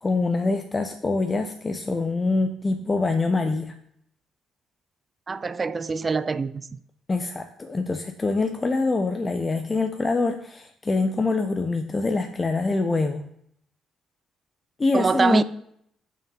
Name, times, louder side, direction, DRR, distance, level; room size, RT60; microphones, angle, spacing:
voice 1, 0.0-3.8 7.1-13.3 14.8-15.4, left 3 dB, 25° left, 7 dB, 0.8 m, -25 dB
voice 2, 5.3-6.5 14.9-15.4, right 4 dB, 30° right, 16 dB, 0.4 m, -24 dB
6.4 x 6.2 x 5.7 m, 0.72 s
figure-of-eight pair, 45°, 0 cm